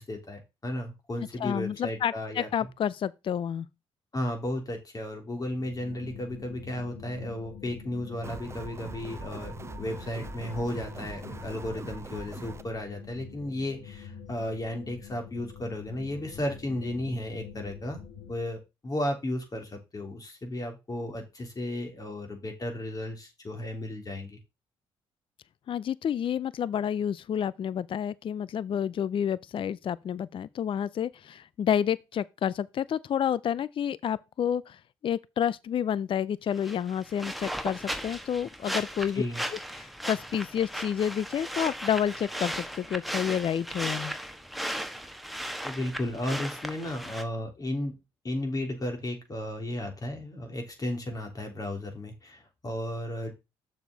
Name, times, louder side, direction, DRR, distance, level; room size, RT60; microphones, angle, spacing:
voice 1, 0.0-2.5 4.1-18.0 18.3-24.4 39.1-39.4 45.6-47.9 48.2-53.3, left 1 dB, 35° left, 3.4 m, -34 dB
voice 2, 1.4-3.7 25.7-39.2 39.8-44.1, left 9 dB, 50° left, 0.4 m, -29 dB
sound 1, 5.3-18.4, left 7 dB, 90° left, 1.7 m, -46 dB
sound 2, 8.2-12.6, right 3 dB, 25° right, 0.7 m, -42 dB
sound 3, 36.5-47.2, equal, ahead, 1.3 m, -36 dB
6.7 x 6.3 x 4.0 m
supercardioid pair, 60°, 11 cm